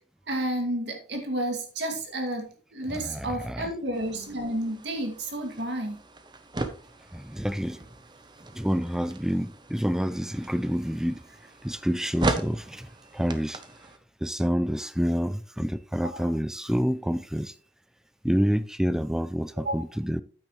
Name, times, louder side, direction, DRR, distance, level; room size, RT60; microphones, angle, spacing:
voice 1, 0.3-6.0 16.1-16.2 19.6-19.7, right 1 dB, 75° right, 2.3 m, -31 dB
voice 2, 2.9-3.7 7.1-7.8 8.5-11.2 11.6-13.6 14.2-17.5 18.2-20.2, equal, 5° right, 0.3 m, -28 dB
sound 1, 3.9-14.0, right 2 dB, 25° right, 0.7 m, -37 dB
9.1 x 8.7 x 3.1 m
head